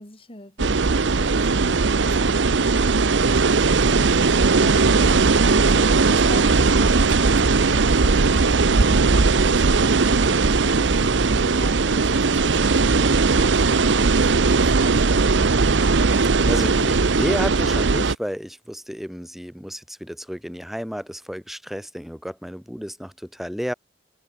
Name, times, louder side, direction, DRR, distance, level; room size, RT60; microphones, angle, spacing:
voice 1, 0.0-15.4, left 1 dB, 30° left, 5.4 m, -42 dB
sound 1, 0.6-18.1, right 4 dB, 70° right, 0.8 m, -18 dB
voice 2, 16.1-23.7, equal, ahead, 3.6 m, -31 dB
head